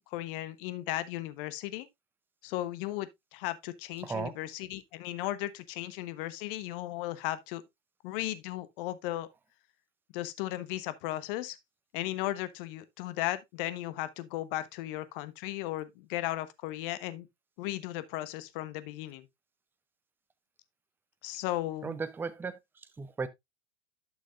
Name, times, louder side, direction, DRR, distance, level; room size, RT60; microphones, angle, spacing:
voice 1, 0.0-1.9 2.4-7.6 8.0-9.3 10.1-11.6 11.9-17.3 17.6-19.3 21.2-22.0, left 15 dB, 50° left, 1.1 m, -36 dB
voice 2, 21.8-22.6 23.0-23.3, right 4 dB, 5° right, 0.5 m, -35 dB
11.5 x 6.4 x 2.4 m
hypercardioid pair, 105°, 36 cm